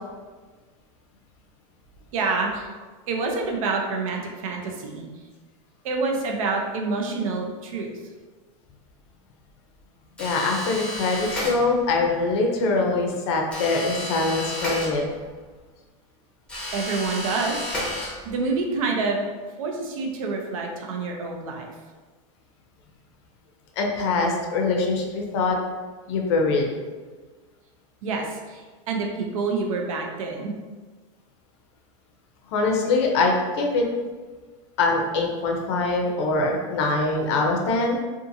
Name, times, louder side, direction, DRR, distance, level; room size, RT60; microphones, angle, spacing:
voice 1, 2.1-2.7 3.1-5.0 5.8-7.9 16.7-19.3 19.6-21.7 28.0-30.5, right 3 dB, 75° right, 1 dB, 0.6 m, -27 dB
voice 2, 10.2-15.0 23.8-25.6 26.1-26.7 32.5-33.8 34.8-38.0, left 3 dB, 50° left, 1 dB, 0.5 m, -23 dB
Türsummer - mit Öffnen lang, 10.2-12.0 13.5-15.4 16.5-18.5, left 1 dB, 5° left, 0.6 m, -32 dB
2.6 x 2.4 x 2.6 m, 1.4 s
supercardioid pair, 160°, 17 cm